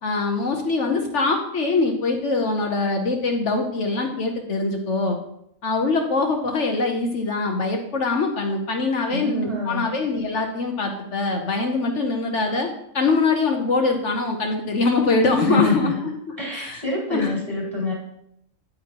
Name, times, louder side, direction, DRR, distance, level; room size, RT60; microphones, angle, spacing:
voice 1, 0.0-5.2 5.6-16.8 17.1-17.3, left 3 dB, 65° left, 3 dB, 1.2 m, -23 dB
voice 2, 9.1-9.9 15.4-15.9 16.4-17.9, left 2 dB, 25° right, -6 dB, 3.5 m, -25 dB
9.3 x 8.9 x 2.9 m, 0.77 s
omnidirectional pair, 1.4 m